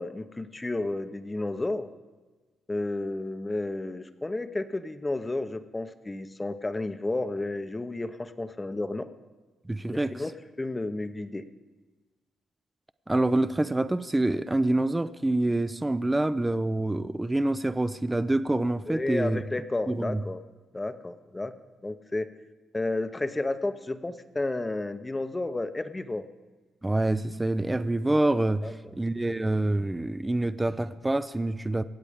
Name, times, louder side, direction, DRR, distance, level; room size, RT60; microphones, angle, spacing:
voice 1, 0.0-1.9 2.7-9.1 9.9-11.5 18.9-20.4 20.7-21.5 21.8-22.3 22.7-26.3 28.6-28.9, left 2 dB, 15° left, 10 dB, 0.7 m, -32 dB
voice 2, 9.7-10.1 13.1-19.4 19.9-20.2 26.8-28.7 29.0-31.8, right 2 dB, 15° right, 13 dB, 0.4 m, -26 dB
25.0 x 8.3 x 3.6 m, 1.3 s
cardioid pair, 90°, 0 cm